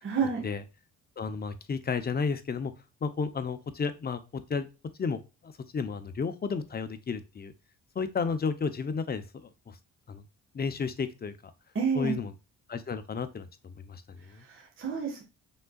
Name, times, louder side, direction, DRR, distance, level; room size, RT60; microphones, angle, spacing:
voice 1, 0.0-0.4 11.7-12.2 14.5-15.2, right 6 dB, 40° right, 0 dB, 1.5 m, -29 dB
voice 2, 1.2-2.7 3.0-4.7 5.0-7.5 7.9-9.8 10.1-10.2 10.5-11.3 11.9-12.3 12.7-14.4, left 5 dB, 30° left, 10 dB, 0.7 m, -32 dB
5.5 x 3.7 x 2.3 m, 0.29 s
cardioid pair, 90°, 30 cm